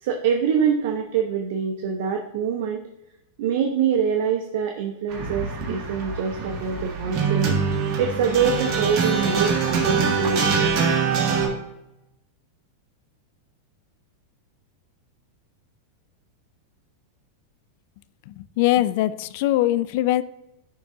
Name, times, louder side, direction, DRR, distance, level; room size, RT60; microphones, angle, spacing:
voice 1, 0.0-2.8 3.4-7.6 8.0-10.5, right 7 dB, 65° right, 2 dB, 0.7 m, -24 dB
sound 1, 5.1-11.5, right 5 dB, 45° right, 1.6 m, -24 dB
voice 2, 18.3-20.2, left 15 dB, 60° left, 16 dB, 0.3 m, -22 dB
10.5 x 3.7 x 2.7 m, 0.90 s
supercardioid pair, 130°, 0 cm